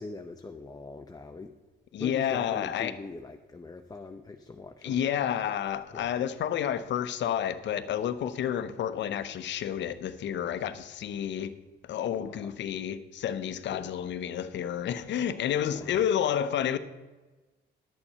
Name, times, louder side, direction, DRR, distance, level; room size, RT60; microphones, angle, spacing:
voice 1, 0.0-1.5 2.0-5.0 5.9-6.1 12.2-12.5 13.7-13.9 15.7-16.0, left 3 dB, 20° left, 0.7 m, -42 dB
voice 2, 1.9-2.9 4.8-11.5 11.8-16.8, left 9 dB, 60° left, 0.8 m, -30 dB
11.0 x 7.0 x 5.5 m
cardioid pair, 85°, 21 cm